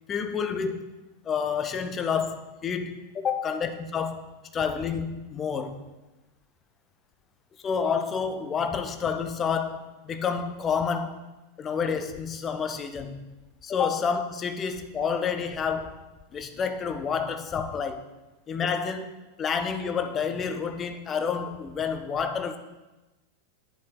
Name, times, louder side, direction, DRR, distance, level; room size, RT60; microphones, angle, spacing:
voice 1, 0.1-0.9 1.2-4.2 4.5-5.9 7.6-11.2 11.6-13.3 13.6-16.0 16.3-18.0 18.5-22.6, left 6 dB, 25° left, 0.6 m, -29 dB
9.5 x 7.3 x 2.3 m
figure-of-eight pair, 90°, 0 cm